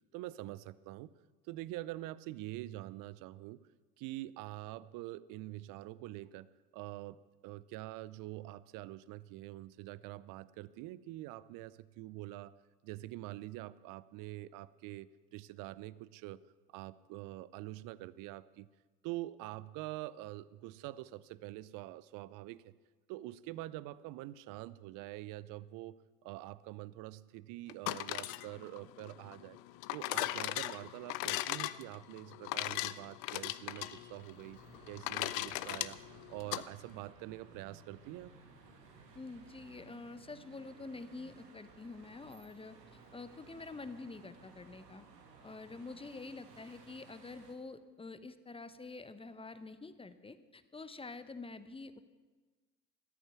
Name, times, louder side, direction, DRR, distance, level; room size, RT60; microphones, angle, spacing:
voice 1, 0.1-1.1 1.4-3.6 4.0-7.2 7.4-12.5 12.8-16.4 16.7-18.7 19.0-22.7 23.1-26.0 26.2-29.6 29.9-34.6 34.9-36.0 36.3-38.3, right 16 dB, 45° right, 18 dB, 0.6 m, -45 dB
sound 1, 27.7-36.6, left 17 dB, 60° left, 0.7 m, -38 dB
sound 2, 33.7-47.5, right 4 dB, 85° right, 2.0 m, -58 dB
voice 2, 39.1-42.8 43.1-45.0 45.4-52.0, left 3 dB, 10° left, 12 dB, 0.8 m, -47 dB
14.0 x 13.0 x 5.9 m, 1.3 s
hypercardioid pair, 70°, 47 cm